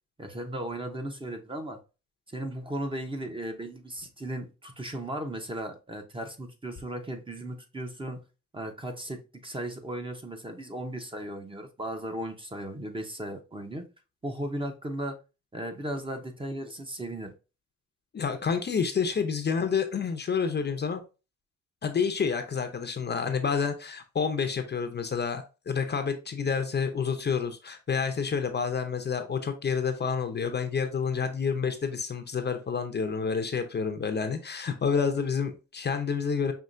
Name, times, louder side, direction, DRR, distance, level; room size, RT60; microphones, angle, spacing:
voice 1, 0.2-1.8 2.3-8.2 8.5-13.8 14.2-15.2 15.5-17.3, right 1 dB, 15° right, 0.9 m, -36 dB
voice 2, 18.1-21.0 21.8-36.5, left 6 dB, 35° left, 0.7 m, -29 dB
5.6 x 2.8 x 2.6 m
cardioid pair, 90°, 30 cm